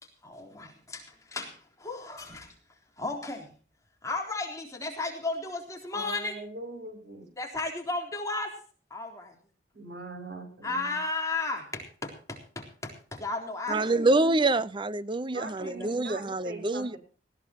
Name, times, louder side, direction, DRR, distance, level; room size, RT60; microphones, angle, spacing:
voice 1, 0.0-2.5 3.0-3.5 4.0-6.3 7.4-8.6 8.9-9.3 10.6-13.9 15.6-15.9, left 3 dB, 20° left, 3.7 m, -34 dB
voice 2, 5.9-7.3 9.7-11.0 13.7-14.3 15.3-17.0, right 2 dB, 65° right, 6.5 m, -41 dB
voice 3, 13.7-17.0, right 2 dB, 30° right, 0.7 m, -26 dB
19.5 x 16.0 x 3.0 m
head